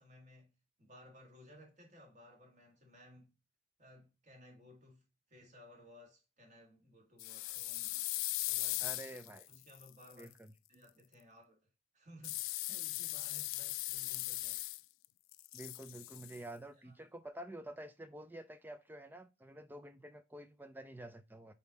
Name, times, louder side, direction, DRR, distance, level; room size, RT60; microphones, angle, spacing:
voice 1, 0.0-3.3 3.8-8.0 8.4-9.1 9.5-10.3 10.7-11.7 11.9-14.6 16.8-17.1, equal, 35° right, 1.8 m, -59 dB
sound 1, 7.2-10.2 12.2-15.1 15.3-16.4, left 19 dB, 80° left, 0.3 m, -39 dB
voice 2, 8.8-9.5 10.2-10.5 15.5-21.5, right 1 dB, 10° right, 0.4 m, -49 dB
5.4 x 4.0 x 4.9 m
head